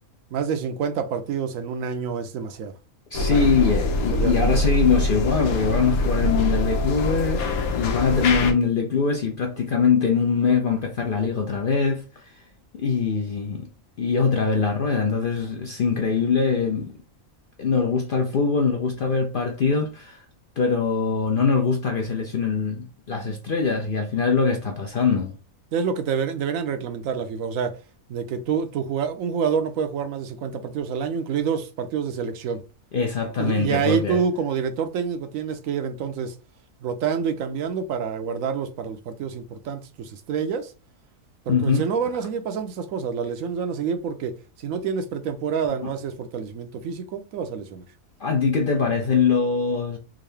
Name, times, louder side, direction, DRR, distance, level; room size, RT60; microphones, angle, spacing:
voice 1, 0.3-2.7 3.2-3.7 4.1-4.5 25.7-27.8 28.1-32.6 33.4-36.4 36.8-40.7 41.5-47.8, right 6 dB, 75° right, 1.0 m, -27 dB
sound 1, 3.1-8.5, left 2 dB, 85° left, 1.2 m, -24 dB
voice 2, 3.1-12.3 12.8-13.7 14.0-17.0 17.6-20.2 20.6-25.4 32.9-34.2 41.5-41.8 45.8-45.9 48.2-50.0, left 5 dB, 55° left, 0.6 m, -23 dB
3.7 x 2.6 x 3.3 m
omnidirectional pair, 1.5 m